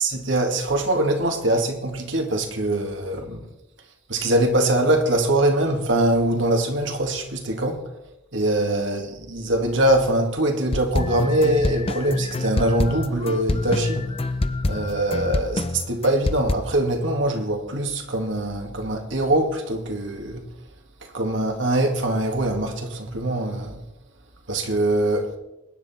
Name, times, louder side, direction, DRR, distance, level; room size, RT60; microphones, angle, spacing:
voice 1, 0.0-3.4 4.1-7.8 8.3-14.0 14.6-20.4 21.1-23.8 24.5-25.3, right 1 dB, 65° right, 2.3 m, -23 dB
sound 1, 10.7-16.6, left 2 dB, 30° left, 0.6 m, -26 dB
21.5 x 10.0 x 4.4 m
head